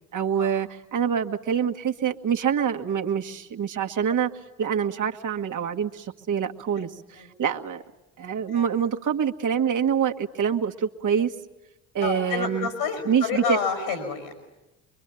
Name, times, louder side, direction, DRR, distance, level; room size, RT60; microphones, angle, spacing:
voice 1, 0.1-4.3 4.6-7.8 8.2-11.3 11.9-12.7 13.1-13.6, right 8 dB, 50° right, 4 dB, 1.9 m, -25 dB
voice 2, 12.0-14.3, left 6 dB, 80° left, 5 dB, 5.0 m, -29 dB
25.0 x 24.0 x 9.2 m, 1.0 s
hypercardioid pair, 55°, 39 cm